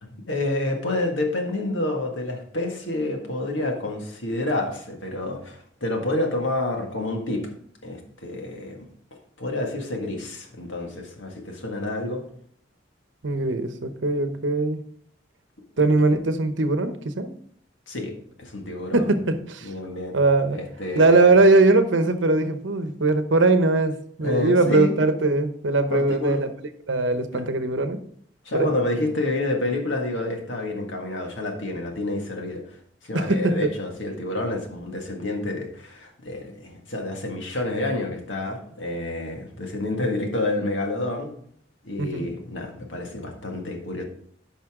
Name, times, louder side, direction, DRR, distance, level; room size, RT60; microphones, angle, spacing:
voice 1, 0.0-7.4 7.8-8.9 9.4-12.2 17.9-18.1 18.4-19.1 19.6-20.2 20.5-21.3 24.2-24.9 25.9-26.4 27.3-27.4 28.4-32.6 33.0-41.3 41.8-44.0, left 2 dB, 75° left, 2 dB, 1.8 m, -28 dB
voice 2, 13.2-14.8 15.8-17.3 18.9-19.7 20.1-20.6 20.9-26.5 26.9-28.0 28.5-28.7 33.1-33.7 42.0-42.3, right 2 dB, 70° right, 9 dB, 0.9 m, -20 dB
10.5 x 5.6 x 3.7 m, 0.64 s
head